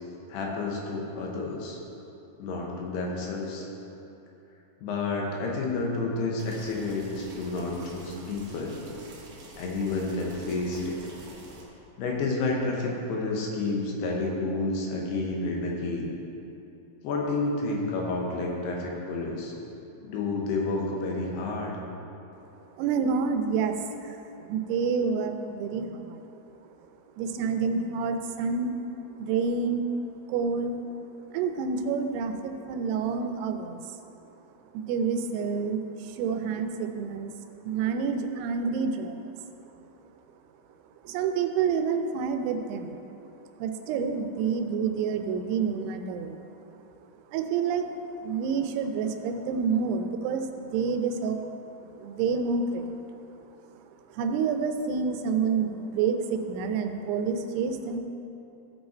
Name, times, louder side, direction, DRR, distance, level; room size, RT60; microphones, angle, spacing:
voice 1, 0.3-1.8 2.4-3.7 4.8-8.8 9.6-11.0 12.0-16.1 17.0-19.5 20.0-21.7, left 3 dB, 90° left, -1 dB, 3.3 m, -30 dB
boiled water, 6.4-11.6, right 2 dB, 65° right, 1.4 m, -47 dB
voice 2, 22.8-26.2 27.2-28.8 29.2-29.8 30.3-30.8 31.3-34.0 34.7-37.3 37.6-39.3 41.0-43.0 43.6-46.4 47.3-51.5 51.8-53.2 54.1-58.0, right 5 dB, 90° right, 6 dB, 2.7 m, -28 dB
14.0 x 5.6 x 4.4 m, 2.9 s
omnidirectional pair, 4.6 m